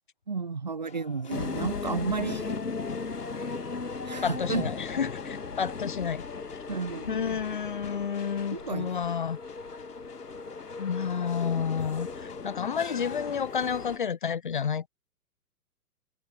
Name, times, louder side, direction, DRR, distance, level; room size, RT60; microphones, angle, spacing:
voice 1, 0.3-2.6 4.1-4.7 6.7-7.2 8.5-9.0, right 4 dB, 30° right, 0.4 m, -32 dB
sound 1, 0.8-13.5, left 10 dB, 15° left, 5.2 m, -53 dB
sound 2, 1.3-14.0, left 4 dB, 75° left, 1.5 m, -37 dB
voice 2, 4.2-6.2 7.1-9.4 10.8-14.9, left 7 dB, 35° left, 0.4 m, -30 dB
figure-of-eight pair, 120°, 46 cm